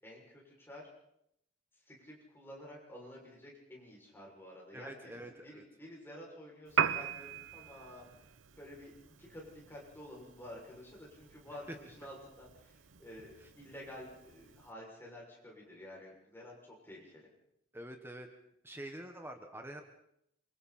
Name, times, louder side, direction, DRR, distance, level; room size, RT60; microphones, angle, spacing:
voice 1, 0.0-0.9 1.8-8.9 9.2-17.3, left 1 dB, 10° left, -3 dB, 6.8 m, -51 dB
voice 2, 4.7-5.6 11.7-11.8 13.4-13.5 17.7-18.3 18.6-19.8, right 1 dB, 10° right, 5 dB, 1.5 m, -46 dB
Piano, 6.7-14.7, right 7 dB, 85° right, 0.9 m, -40 dB
27.5 x 24.5 x 4.4 m, 0.75 s
head